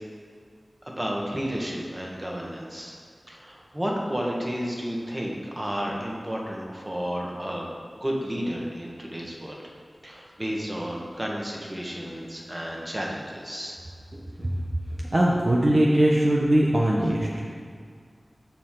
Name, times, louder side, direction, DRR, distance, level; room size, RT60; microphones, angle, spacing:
voice 1, 1.0-2.9 3.3-7.7 8.0-9.6 10.0-13.8, equal, 20° right, -2 dB, 1.5 m, -32 dB
voice 2, 14.1-14.7 15.1-17.5, right 1 dB, 45° right, -4 dB, 0.9 m, -21 dB
14.0 x 4.7 x 3.8 m, 2.1 s
wide cardioid pair, 65°, 0 cm